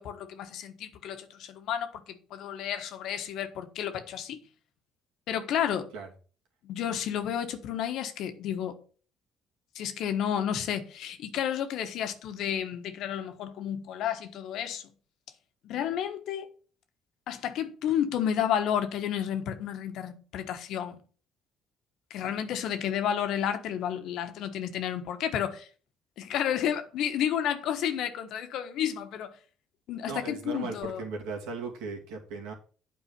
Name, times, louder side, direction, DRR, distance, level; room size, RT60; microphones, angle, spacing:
voice 1, 0.0-4.4 5.3-5.9 6.6-8.8 9.7-14.8 15.6-16.5 17.3-21.0 22.1-25.7 26.2-29.3 29.9-31.0, left 9 dB, 70° left, 1.3 m, -31 dB
voice 2, 30.0-32.5, right 4 dB, 80° right, 2.7 m, -37 dB
8.7 x 4.7 x 6.9 m
supercardioid pair, 65°, 0 cm